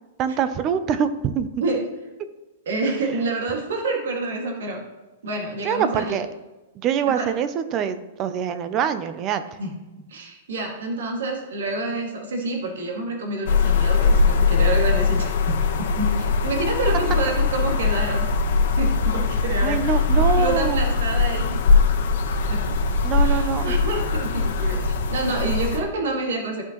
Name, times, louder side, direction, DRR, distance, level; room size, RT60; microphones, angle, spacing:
voice 1, 0.2-1.5 5.6-6.3 6.8-9.4 19.6-21.0 23.0-23.6, right 8 dB, 20° right, 11 dB, 0.4 m, -24 dB
voice 2, 2.7-4.8 5.2-6.2 7.1-7.3 9.6-9.8 10.1-18.3 18.8-21.6 22.5-22.8 23.2-26.6, right 2 dB, 85° right, 1 dB, 2.0 m, -28 dB
sound 1, 13.5-25.8, left 4 dB, 55° left, 1.1 m, -21 dB
14.0 x 5.6 x 3.0 m, 1.1 s
supercardioid pair, 175°, 0 cm